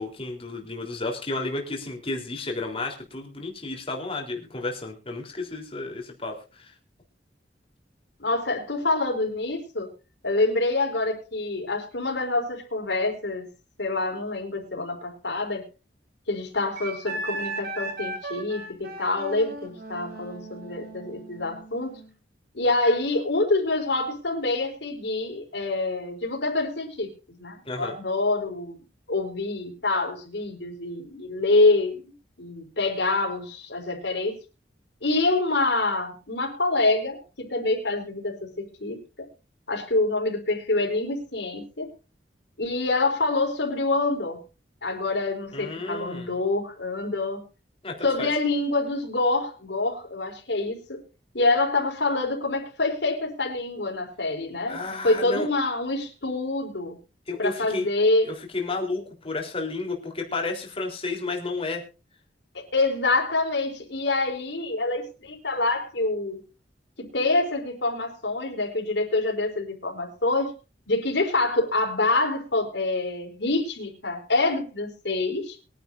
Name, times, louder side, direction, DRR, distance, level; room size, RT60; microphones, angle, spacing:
voice 1, 0.0-6.7 27.7-28.0 45.5-46.3 47.8-48.3 54.7-55.5 57.3-57.9 58.2-61.8, left 3 dB, 30° left, 2 dB, 3.7 m, -32 dB
voice 2, 8.2-9.9 10.2-13.5 13.8-15.6 16.3-22.0 22.5-28.8 29.1-32.1 32.4-34.3 35.0-39.0 39.7-41.9 42.6-44.4 44.8-47.4 48.0-51.0 51.3-57.0 57.4-58.3 62.5-66.4 67.0-70.5 70.9-75.6, left 2 dB, 70° left, 2 dB, 4.7 m, -26 dB
Wind instrument woodwind instrument, 16.8-22.1, right 2 dB, 60° right, 4.4 m, -36 dB
23.0 x 10.5 x 2.6 m, 0.31 s
head